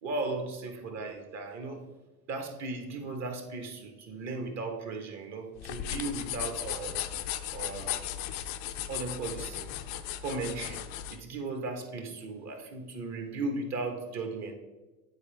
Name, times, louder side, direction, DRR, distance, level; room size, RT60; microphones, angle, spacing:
voice 1, 0.0-1.8 2.3-7.0 7.5-8.1 8.9-9.7 10.2-10.8 11.1-14.5, right 3 dB, 35° right, 5 dB, 1.4 m, -36 dB
sound 1, 5.6-11.2, left 11 dB, 45° left, 0.6 m, -36 dB
9.6 x 4.7 x 3.4 m, 1.2 s
hypercardioid pair, 90°, 45 cm